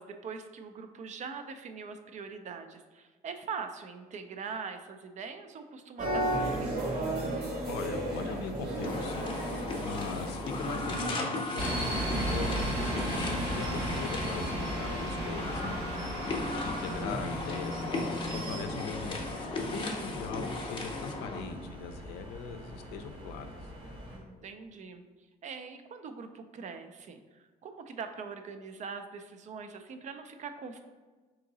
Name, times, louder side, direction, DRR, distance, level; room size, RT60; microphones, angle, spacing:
voice 1, 0.0-7.1 16.5-17.0 24.1-25.0 25.4-30.8, right 5 dB, 45° right, 7 dB, 0.4 m, -42 dB
sound 1, 6.0-11.1, right 1 dB, 65° right, 1.4 m, -33 dB
voice 2, 7.7-15.8 16.6-19.2 19.7-23.5, left 5 dB, 85° left, 7 dB, 0.5 m, -40 dB
sound 2, 8.8-21.4, left 2 dB, 30° left, 0.7 m, -36 dB
sound 3, 11.6-24.2, right 1 dB, 80° right, 1.2 m, -36 dB
3.6 x 2.8 x 3.9 m, 1.3 s
cardioid pair, 110°, 17 cm